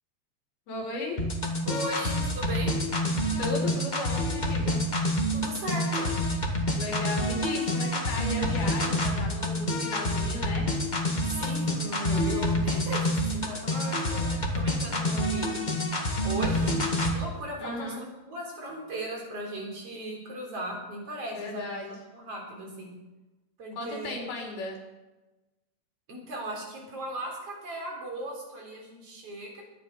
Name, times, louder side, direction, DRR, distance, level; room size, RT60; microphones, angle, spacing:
voice 1, 0.7-1.2 3.4-4.8 6.7-10.7 17.6-18.0 21.4-21.9 23.8-24.8, left 2 dB, 85° left, -1 dB, 5.5 m, -35 dB
sound 1, 1.2-17.2, left 1 dB, 70° left, 0.4 m, -27 dB
voice 2, 1.7-2.8 5.3-6.1 11.2-15.6 16.2-16.8 17.1-21.7 22.1-22.9 23.6-24.1 26.1-29.6, right 1 dB, 40° right, -1 dB, 4.6 m, -37 dB
22.5 x 10.0 x 5.3 m, 1.1 s
omnidirectional pair, 4.3 m